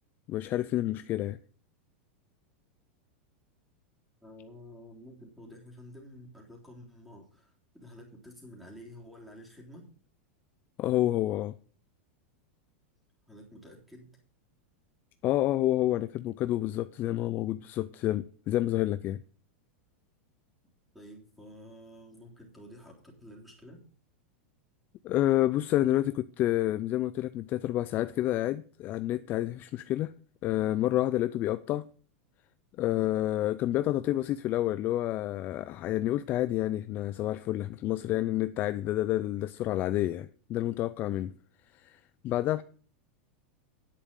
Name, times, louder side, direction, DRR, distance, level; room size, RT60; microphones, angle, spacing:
voice 1, 0.3-1.4 10.8-11.5 15.2-19.2 25.0-30.1 30.4-31.8 32.8-41.3 41.8-42.6, left 14 dB, 30° left, 0.4 m, -29 dB
voice 2, 4.2-9.9 13.3-14.1 20.9-23.8, equal, ahead, 3.5 m, -50 dB
10.0 x 8.7 x 5.2 m
supercardioid pair, 155°, 7 cm